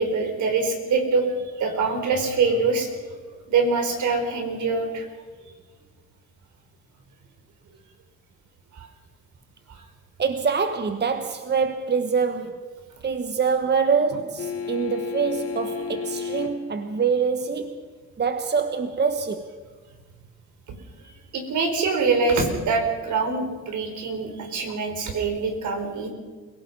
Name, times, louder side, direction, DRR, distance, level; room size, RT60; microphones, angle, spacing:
voice 1, 0.0-2.9 3.5-5.1 8.8-8.9 15.8-15.9 21.0-26.1, right 4 dB, 75° right, 4.5 m, -24 dB
voice 2, 10.2-12.7 13.0-17.8 18.2-19.5, right 5 dB, 35° right, 1.3 m, -25 dB
sound 1, 14.4-16.7 19.3-19.4, left 5 dB, 50° left, 2.0 m, -32 dB
28.5 x 17.5 x 5.5 m
cardioid pair, 90°, 30 cm